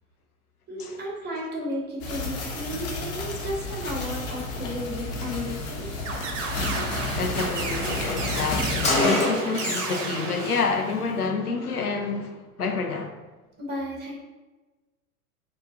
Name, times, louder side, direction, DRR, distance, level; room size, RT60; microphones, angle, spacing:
voice 1, 0.7-5.9 13.6-14.1, equal, 25° right, 1.2 m, -33 dB
sound 1, 2.0-9.0, left 2 dB, 50° left, 1.1 m, -31 dB
sound 2, 6.0-11.2, right 4 dB, 55° right, 0.7 m, -33 dB
Car, 6.4-6.6 6.8-6.9 7.1-10.1 10.3-10.6, left 2 dB, 15° left, 0.9 m, -27 dB
voice 2, 7.0-13.2, left 4 dB, 90° left, 0.6 m, -28 dB
4.7 x 2.3 x 3.7 m
figure-of-eight pair, 95°, 44 cm